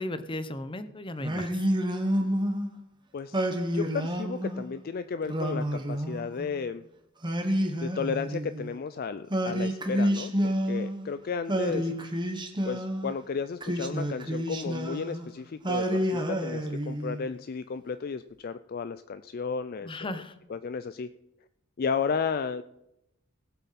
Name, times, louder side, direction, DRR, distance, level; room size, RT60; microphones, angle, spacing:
voice 1, 0.0-1.5 19.8-20.3, left 1 dB, 25° left, 11 dB, 0.8 m, -35 dB
Singing, 1.2-2.7 3.3-4.7 5.3-6.6 7.2-8.7 9.3-11.1 11.5-13.1 13.6-15.3 15.6-17.3, equal, 20° right, 1.3 m, -29 dB
voice 2, 3.7-6.8 7.8-11.9 12.6-20.2 20.5-21.1 21.8-22.6, left 5 dB, 45° left, 12 dB, 0.4 m, -33 dB
18.5 x 8.1 x 4.2 m, 0.84 s
head